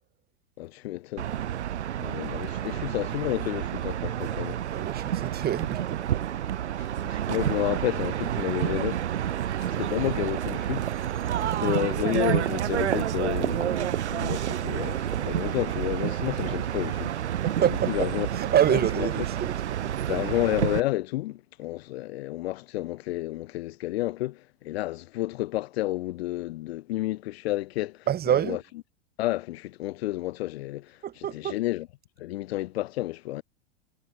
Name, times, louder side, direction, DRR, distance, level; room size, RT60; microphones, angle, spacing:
voice 1, 0.6-1.3 2.0-4.6 6.8-9.1 9.6-11.2 11.6-17.3 17.9-18.3 18.7-19.1 20.1-28.6 29.2-31.0 31.3-31.9 32.2-33.4, left 17 dB, 65° left, 1.5 m, -31 dB
sound 1, 1.2-20.8, right 11 dB, 85° right, 1.8 m, -29 dB
voice 2, 4.7-6.2 17.4-20.3 28.1-28.6 31.0-31.6, right 10 dB, 30° right, 6.0 m, -27 dB
hypercardioid pair, 120°, 33 cm